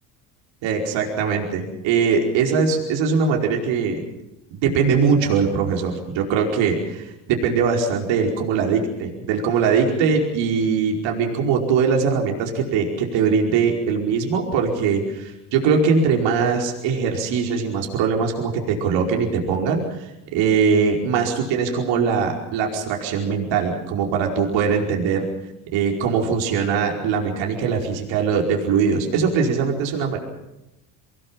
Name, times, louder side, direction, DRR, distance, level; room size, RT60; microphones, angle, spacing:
voice 1, 0.6-4.0 4.5-19.8 20.3-25.2 25.7-30.2, right 5 dB, 70° right, 1 dB, 5.0 m, -21 dB
24.5 x 19.0 x 7.3 m, 0.91 s
hypercardioid pair, 70°, 46 cm